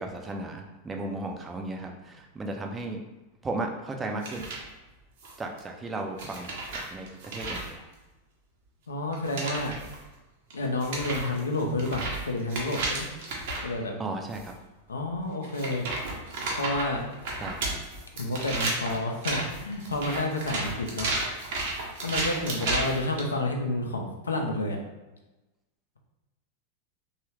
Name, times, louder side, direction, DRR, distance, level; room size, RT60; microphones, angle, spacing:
voice 1, 0.0-3.0 3.4-4.5 5.4-7.9 14.0-14.5 17.4-17.8, right 2 dB, 15° right, 3 dB, 0.4 m, -35 dB
sound 1, 4.2-4.6 5.2-5.6 6.2-7.7 9.1-10.0 10.5-10.6 10.8-13.7 14.3-14.5 15.4-23.2, right 2 dB, 50° right, 0.7 m, -33 dB
voice 2, 8.9-9.7 10.5-13.1 13.6-13.9 14.9-15.9 16.6-17.0 18.2-21.1 22.0-24.8, left 2 dB, 75° left, 2 dB, 0.5 m, -30 dB
3.0 x 2.3 x 3.1 m, 1.1 s
figure-of-eight pair, 90°, 0 cm